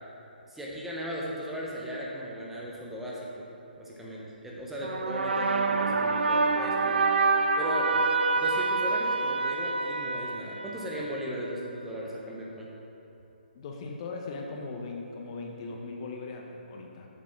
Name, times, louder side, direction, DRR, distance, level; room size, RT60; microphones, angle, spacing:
voice 1, 0.5-3.5 3.8-8.0 8.4-12.7, equal, 5° right, -5 dB, 0.7 m, -37 dB
sound 1, 4.8-11.2, right 3 dB, 80° right, 0.5 m, -27 dB
voice 2, 13.5-17.1, left 3 dB, 35° left, 1 dB, 0.6 m, -39 dB
7.3 x 4.1 x 5.7 m, 2.9 s
hypercardioid pair, 155°, 6 cm